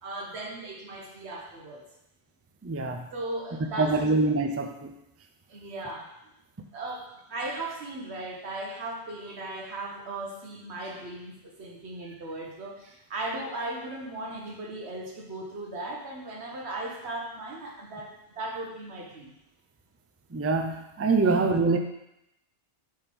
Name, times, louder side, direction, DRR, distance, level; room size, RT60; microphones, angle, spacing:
voice 1, 0.0-1.9 2.9-4.0 5.5-6.1 6.7-19.3 21.2-21.4, right 2 dB, 85° right, 0 dB, 1.4 m, -37 dB
voice 2, 2.6-3.0 3.8-4.9 20.3-21.8, right 3 dB, 25° right, 5 dB, 0.3 m, -24 dB
7.0 x 3.6 x 5.3 m, 0.85 s
omnidirectional pair, 1.1 m